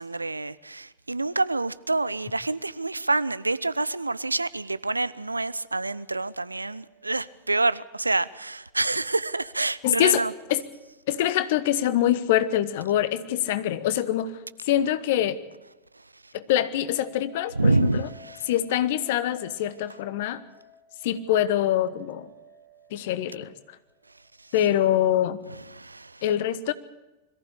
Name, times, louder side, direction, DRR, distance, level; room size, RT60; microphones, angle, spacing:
voice 1, 0.0-10.3 15.9-16.3 17.5-18.5 24.1-24.5 25.5-26.2, right 2 dB, 80° right, 0.6 m, -27 dB
voice 2, 9.8-10.2 10.5-10.6 11.1-14.3 14.6-15.4 16.3-18.1 18.5-20.4 21.0-22.3 22.9-23.5 24.5-25.4 26.2-26.7, left 12 dB, 50° left, 1.2 m, -24 dB
sound 1, 16.9-24.8, left 1 dB, 15° left, 4.9 m, -54 dB
22.0 x 14.5 x 8.5 m
figure-of-eight pair, 90°, 0 cm